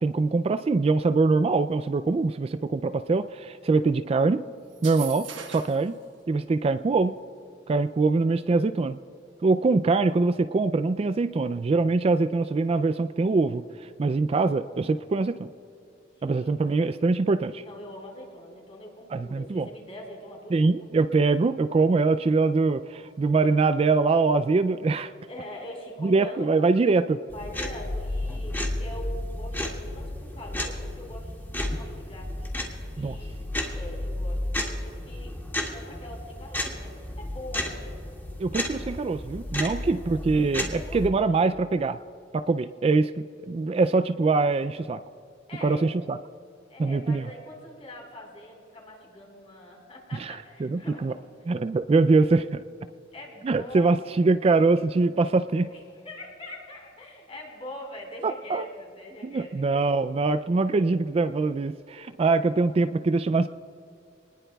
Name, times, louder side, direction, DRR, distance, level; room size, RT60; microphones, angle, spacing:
voice 1, 0.0-4.4 4.8-6.0 6.3-7.2 7.7-9.0 9.4-15.5 16.2-17.6 19.1-19.7 20.5-25.1 26.0-27.2 33.0-33.2 38.4-42.0 42.3-45.0 45.6-46.2 46.8-47.2 50.1-51.1 51.5-52.6 53.4-55.7 58.2-58.7 59.2-63.5, right 3 dB, 30° right, 12 dB, 0.3 m, -23 dB
sound 1, 4.7-5.9, right 8 dB, 80° right, 1.4 m, -40 dB
voice 2, 16.1-16.9 17.6-21.1 25.3-26.6 27.3-33.5 33.7-35.4 35.7-37.8 38.3-38.8 39.6-39.9 40.7-41.5 45.5-46.0 46.7-51.5 53.1-54.1 55.7-60.2, left 1 dB, 35° left, -1 dB, 4.4 m, -44 dB
sound 2, 27.3-41.1, left 1 dB, 10° left, 1.9 m, -33 dB
26.5 x 20.0 x 2.3 m, 2.6 s
head